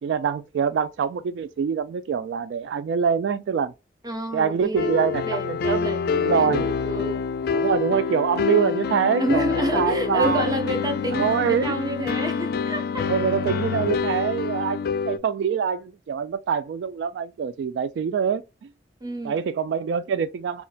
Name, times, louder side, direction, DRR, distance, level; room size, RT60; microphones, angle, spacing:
voice 1, 0.0-3.7 4.3-5.8 6.1-6.7 7.5-9.4 9.7-10.5 11.1-11.7 13.0-18.4 19.2-20.6, right 7 dB, 80° right, 0.3 m, -25 dB
voice 2, 4.0-7.2 9.2-13.1 19.0-19.4, right 1 dB, 20° right, 0.7 m, -29 dB
sound 1, 4.8-15.2, left 5 dB, 60° left, 0.4 m, -26 dB
4.3 x 2.4 x 2.4 m
head